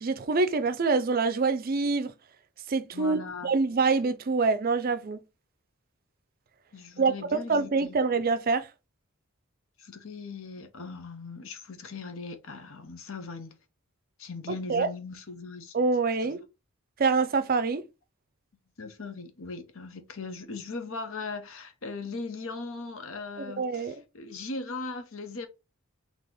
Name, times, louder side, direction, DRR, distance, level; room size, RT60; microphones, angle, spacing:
voice 1, 0.0-2.1 2.7-5.2 7.0-8.7 14.5-14.9 15.7-16.4 17.0-17.8 23.5-23.9, right 4 dB, 45° right, 0.5 m, -26 dB
voice 2, 2.9-3.5 6.7-8.0 9.8-13.5 14.2-15.7 16.3-16.4 18.8-25.5, left 3 dB, 65° left, 0.9 m, -39 dB
4.2 x 2.9 x 3.8 m
head